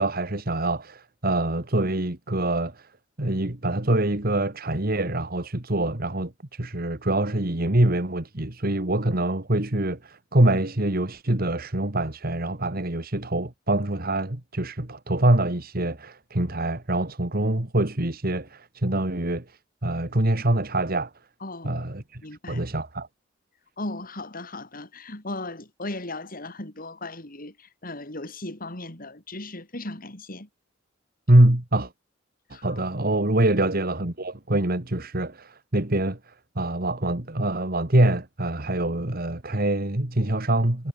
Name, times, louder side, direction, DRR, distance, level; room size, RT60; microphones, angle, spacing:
voice 1, 0.0-2.9 3.2-19.5 19.8-21.1 21.6-22.2 22.5-23.1 31.3-31.9 32.6-40.9, right 1 dB, 50° right, 2.3 m, -24 dB
voice 2, 21.4-21.8 22.2-22.6 23.8-30.5 32.5-32.8, left 2 dB, 50° left, 4.7 m, -37 dB
head